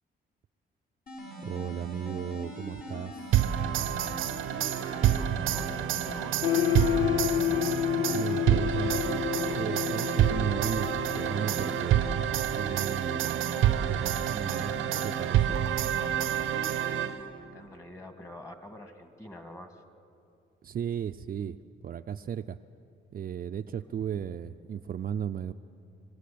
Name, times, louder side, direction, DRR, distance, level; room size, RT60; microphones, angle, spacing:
sound 1, 1.1-17.1, equal, 50° left, 6.6 m, -41 dB
voice 1, 1.4-3.4 8.1-12.1 12.6-15.6 20.6-21.6 21.8-22.6 23.1-25.5, right 8 dB, 45° right, 8 dB, 0.5 m, -35 dB
sound 2, 3.3-17.4, right 11 dB, 80° right, 0.7 m, -28 dB
voice 2, 4.8-7.1 16.9-19.8, left 1 dB, 15° left, 7 dB, 2.2 m, -47 dB
sound 3, 6.4-12.2, left 12 dB, 80° left, 0.6 m, -30 dB
25.5 x 16.0 x 8.6 m, 2.6 s
cardioid pair, 90°, 20 cm